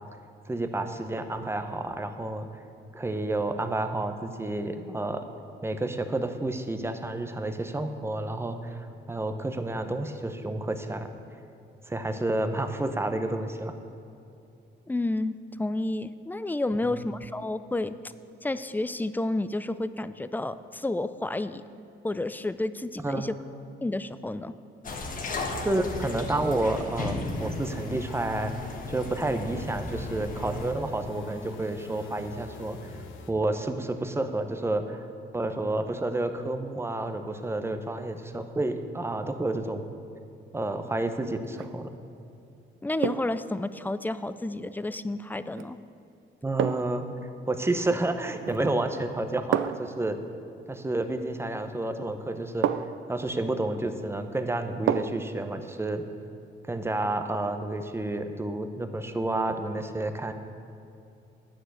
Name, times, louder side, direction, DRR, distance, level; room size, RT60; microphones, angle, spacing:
voice 1, 0.5-2.5 2.9-5.3 5.6-11.1 11.9-13.8 16.9-17.0 23.0-23.3 25.6-28.5 28.9-32.9 33.3-35.0 35.3-39.9 40.5-42.0 46.4-50.2 50.7-52.7 53.1-56.0 56.7-60.3, right 2 dB, 10° right, 7 dB, 0.8 m, -30 dB
voice 2, 14.9-18.0 18.4-21.6 22.0-23.3 23.8-24.5 42.8-45.8, left 2 dB, 10° left, 13 dB, 0.4 m, -30 dB
sound 1, 24.8-30.7, left 2 dB, 45° left, 1.4 m, -35 dB
sound 2, 27.4-33.3, left 5 dB, 75° left, 0.9 m, -42 dB
sound 3, 41.4-41.8 43.0-43.4 45.5-45.7 46.6-47.0 48.4-48.8 49.5-50.0 51.6-51.7 52.6-53.1 54.9-55.3 55.7-55.8, right 10 dB, 70° right, 0.4 m, -29 dB
9.8 x 6.4 x 8.0 m, 2.7 s
cardioid pair, 90°, 20 cm